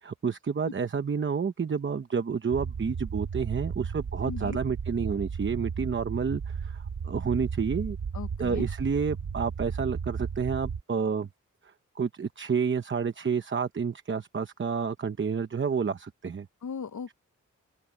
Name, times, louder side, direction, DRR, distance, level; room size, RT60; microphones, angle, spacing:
voice 1, 0.0-8.0 8.4-11.3 11.6-16.5, right 6 dB, 40° right, 0.8 m, -30 dB
sound 1, 2.5-10.8, right 6 dB, 75° right, 1.5 m, -34 dB
voice 2, 4.2-4.6 8.1-8.7 16.6-17.1, left 6 dB, 70° left, 0.9 m, -37 dB
open air
wide cardioid pair, 130°, 31 cm